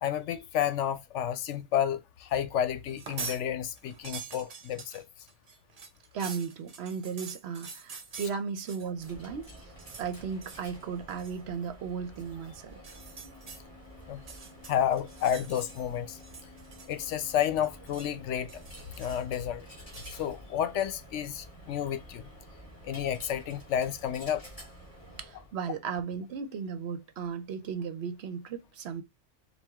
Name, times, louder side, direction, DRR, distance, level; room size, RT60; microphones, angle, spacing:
voice 1, 0.0-5.0 14.1-14.2 14.7-16.2 16.9-18.5 19.0-19.7 20.1-22.3 22.8-24.4, left 9 dB, 80° left, 0.9 m, -31 dB
sound 1, 2.9-3.4 3.8-9.1 9.4-10.1 10.4-10.7 11.1-11.4 12.7-13.6 14.1-15.9 16.2-17.1 17.4-18.1 18.5-19.4 19.9-20.2, right 5 dB, 40° right, 0.6 m, -45 dB
voice 2, 6.1-9.7 10.0-13.0 25.2-29.0, right 6 dB, 65° right, 0.8 m, -36 dB
Coin (dropping), 8.9-25.5, equal, 30° left, 2.6 m, -50 dB
4.6 x 2.3 x 3.5 m
omnidirectional pair, 1.2 m